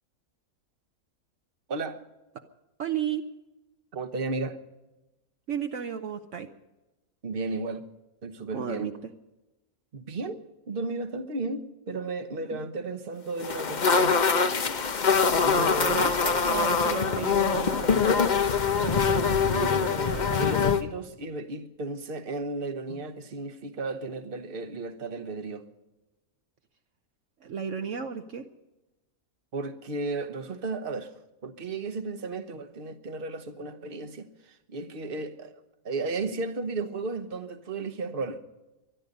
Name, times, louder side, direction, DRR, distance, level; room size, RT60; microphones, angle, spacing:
voice 1, 1.7-2.0 3.9-4.6 7.2-7.8 8.2-8.9 9.9-14.2 15.4-16.1 18.8-25.7 29.5-31.1 31.4-35.5 35.8-38.4, right 3 dB, 45° right, 1.2 m, -34 dB
voice 2, 2.8-3.3 5.5-6.5 8.5-9.1 12.5-12.6 15.6-18.1 27.4-28.4, right 7 dB, 65° right, 1.1 m, -33 dB
sound 1, 13.4-20.8, left 5 dB, 40° left, 0.9 m, -24 dB
23.5 x 11.0 x 5.3 m
omnidirectional pair, 1.5 m